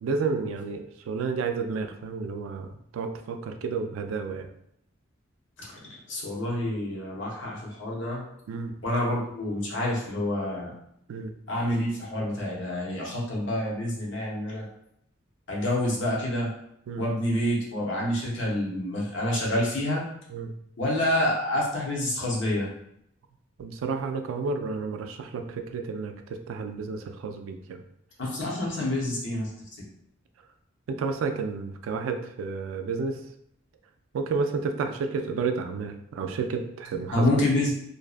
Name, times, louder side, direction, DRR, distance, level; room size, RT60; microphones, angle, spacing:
voice 1, 0.0-4.5 8.5-8.7 11.1-11.3 16.9-17.0 20.3-20.5 23.6-27.8 30.9-33.2 34.1-37.4, right 4 dB, 85° right, 6 dB, 0.3 m, -31 dB
voice 2, 6.1-8.2 8.8-10.7 11.5-14.7 15.5-16.5 17.0-20.1 20.8-22.7 28.2-29.5 37.1-37.7, left 1 dB, 65° left, -4 dB, 0.8 m, -27 dB
2.6 x 2.2 x 2.4 m, 0.75 s
head